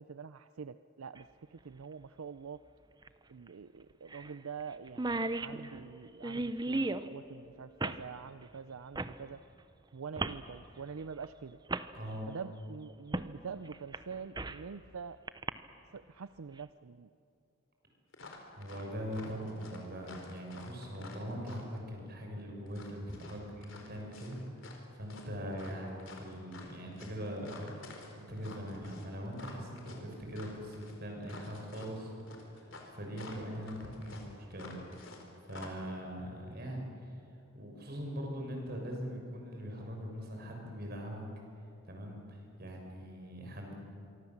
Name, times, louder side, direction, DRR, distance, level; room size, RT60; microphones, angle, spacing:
voice 1, 0.0-2.6 3.3-9.4 9.9-11.6 12.3-15.2 15.9-17.1, right 6 dB, 85° right, 13 dB, 0.5 m, -45 dB
sound 1, 1.2-1.3 3.0-3.1 3.5-3.6 4.1-4.3 4.6-4.7 4.9-7.1 7.8-8.0 8.9-9.2 10.2-10.4 11.2-11.3 11.7-11.9 13.1-13.3 13.7-14.7 15.3-15.5, right 2 dB, 20° right, 0.7 m, -35 dB
voice 2, 12.0-12.3 18.6-24.4 24.9-32.7 32.9-34.8 35.0-35.2 35.4-36.9 37.5-41.2 41.8-43.8, equal, 45° right, 1 dB, 6.1 m, -41 dB
sound 2, 18.1-18.8 19.1-21.8 22.7-24.8 25.1-35.2 35.5-35.7, left 3 dB, 65° left, 3.9 m, -50 dB
26.0 x 24.0 x 7.3 m, 2.7 s
head